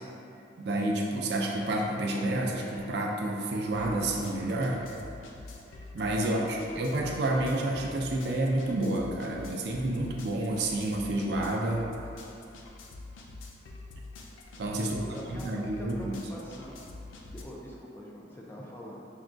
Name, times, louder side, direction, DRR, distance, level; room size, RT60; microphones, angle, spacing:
voice 1, 0.6-4.8 5.9-11.8 14.6-15.0 15.3-16.2, right 1 dB, 60° right, -1 dB, 0.4 m, -29 dB
sound 1, 1.8-1.9 2.2-17.4, left 2 dB, 90° left, 0.4 m, -46 dB
voice 2, 6.2-6.8 14.7-16.9 17.2-19.1, equal, 10° left, -4 dB, 0.3 m, -45 dB
5.9 x 2.2 x 2.5 m, 2.7 s
head